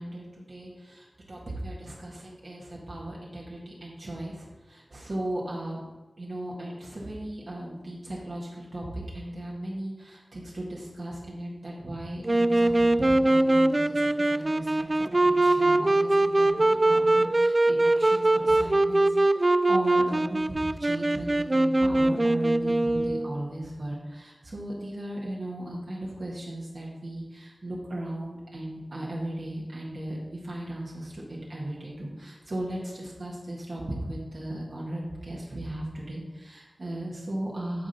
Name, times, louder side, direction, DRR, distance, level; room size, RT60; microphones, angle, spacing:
voice 1, 0.0-5.8 6.2-37.9, right 1 dB, 65° right, -5 dB, 1.6 m, -37 dB
Wind instrument woodwind instrument, 12.2-23.4, right 2 dB, 40° right, 0.3 m, -22 dB
11.0 x 3.8 x 4.2 m, 1.2 s
cardioid pair, 40°, 0 cm